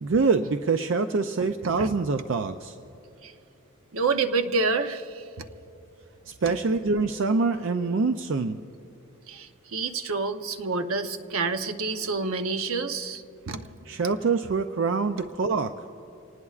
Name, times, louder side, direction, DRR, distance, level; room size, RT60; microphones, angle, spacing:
voice 1, 0.0-2.8 6.3-8.6 13.9-15.7, right 4 dB, 60° right, 8 dB, 0.4 m, -25 dB
voice 2, 3.9-5.4 9.3-13.7, right 4 dB, 80° right, 8 dB, 0.8 m, -28 dB
26.0 x 19.0 x 2.4 m, 2.7 s
head